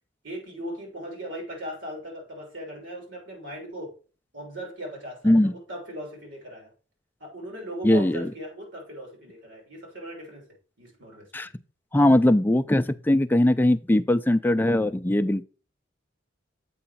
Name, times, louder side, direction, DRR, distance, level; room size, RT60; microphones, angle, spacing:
voice 1, 0.2-3.9 4.3-6.7 7.2-10.4 10.8-11.3, equal, 85° right, 3.3 m, -38 dB
voice 2, 7.8-8.3 11.3-11.5 11.9-15.4, left 1 dB, 10° left, 0.3 m, -20 dB
7.8 x 4.8 x 4.2 m
head